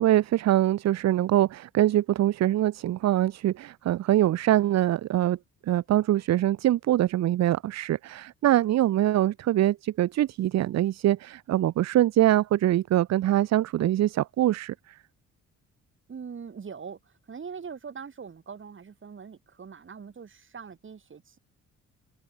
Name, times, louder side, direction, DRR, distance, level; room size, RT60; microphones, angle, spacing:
voice 1, 0.0-5.4 5.7-14.7, right 13 dB, 60° right, 0.7 m, -23 dB
voice 2, 16.1-21.4, right 6 dB, 40° right, 5.1 m, -42 dB
cardioid pair, 90°, 30 cm